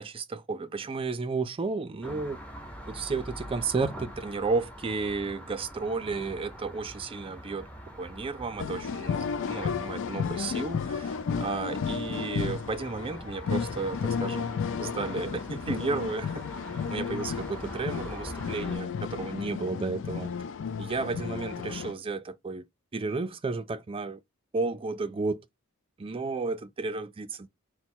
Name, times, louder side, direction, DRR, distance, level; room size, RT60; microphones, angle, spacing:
voice 1, 0.0-2.4 2.9-7.7 8.0-14.5 14.8-16.4 16.9-20.3 20.8-22.6 22.9-24.2 24.5-25.5 26.0-27.5, right 4 dB, 25° right, 0.4 m, -33 dB
sound 1, 2.0-18.8, equal, 5° left, 0.8 m, -44 dB
sound 2, 8.6-21.9, left 6 dB, 60° left, 0.4 m, -33 dB
4.1 x 2.1 x 4.4 m
head